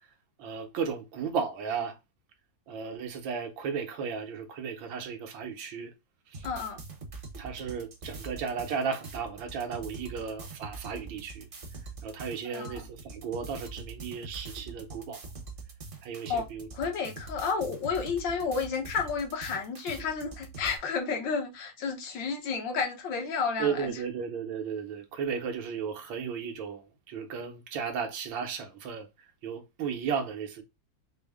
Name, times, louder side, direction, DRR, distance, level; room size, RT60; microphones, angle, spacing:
voice 1, 0.4-2.0 2.7-5.9 6.3-6.5 7.4-11.5 12.0-15.2 16.0-16.7 23.6-29.1 29.4-30.6, right 6 dB, 85° right, 1.6 m, -34 dB
sound 1, 6.3-20.8, right 3 dB, 45° right, 0.7 m, -44 dB
voice 2, 6.4-6.8 12.4-12.8 16.3-16.5 16.7-24.0, left 5 dB, 75° left, 1.7 m, -31 dB
4.9 x 2.0 x 3.4 m
omnidirectional pair, 2.0 m